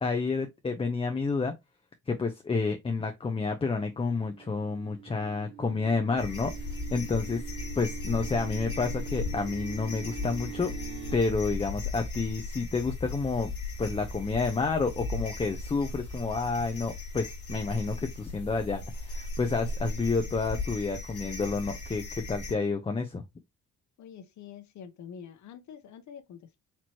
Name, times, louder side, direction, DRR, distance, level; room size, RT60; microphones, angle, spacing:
voice 1, 0.0-1.5 2.1-6.5 6.9-7.4 7.8-10.7 11.1-13.5 13.8-23.2, left 4 dB, 20° left, 0.5 m, -29 dB
sound 1, 3.8-11.2, right 9 dB, 70° right, 1.6 m, -44 dB
sound 2, 6.2-22.5, left 2 dB, 50° left, 1.8 m, -37 dB
voice 2, 24.0-26.6, left 8 dB, 70° left, 0.9 m, -46 dB
4.4 x 2.9 x 2.9 m
cardioid pair, 90°, 30 cm